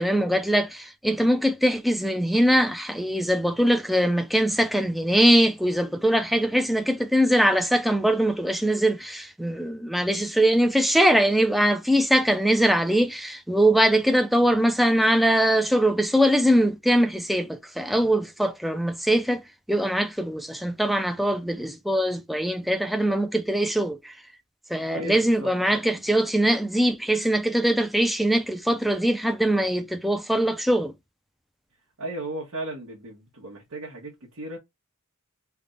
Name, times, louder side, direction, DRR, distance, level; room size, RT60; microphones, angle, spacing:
voice 1, 0.0-19.4 19.7-24.1 24.7-30.9, equal, ahead, 0.3 m, -22 dB
voice 2, 24.9-26.0 32.0-34.6, right 1 dB, 70° right, 1.2 m, -36 dB
3.5 x 2.2 x 3.8 m
head